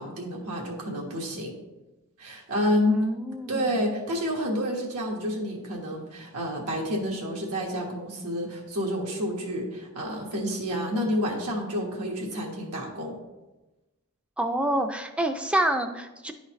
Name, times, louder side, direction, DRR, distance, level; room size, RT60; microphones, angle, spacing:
voice 1, 0.0-1.5 2.2-3.0 3.5-13.2, equal, 90° right, -1 dB, 1.4 m, -29 dB
voice 2, 2.9-3.9 14.4-16.3, right 1 dB, 5° right, 6 dB, 0.3 m, -27 dB
10.5 x 4.0 x 3.1 m, 1.1 s
head